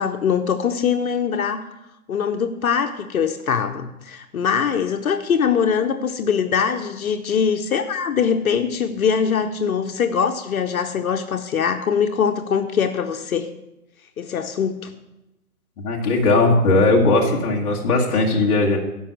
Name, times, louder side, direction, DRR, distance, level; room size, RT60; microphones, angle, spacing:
voice 1, 0.0-1.6 2.1-13.5 14.2-14.9, left 7 dB, 65° left, 6 dB, 0.9 m, -22 dB
voice 2, 15.8-18.8, left 2 dB, 25° left, -1 dB, 1.5 m, -18 dB
13.0 x 5.5 x 6.1 m, 0.93 s
hypercardioid pair, 150°, 45 cm